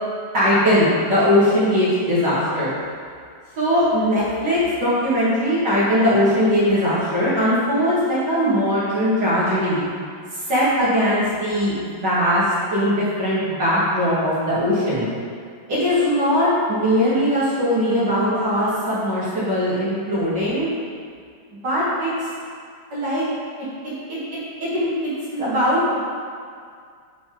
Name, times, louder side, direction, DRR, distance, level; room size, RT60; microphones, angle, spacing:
voice 1, 0.3-2.7 3.6-9.9 10.3-12.4 12.7-15.1 15.7-20.7 21.6-22.1 22.9-23.2 23.6-24.2 24.6-26.0, equal, 65° right, -10 dB, 1.0 m, -20 dB
9.8 x 3.9 x 4.4 m, 2.2 s
omnidirectional pair, 4.8 m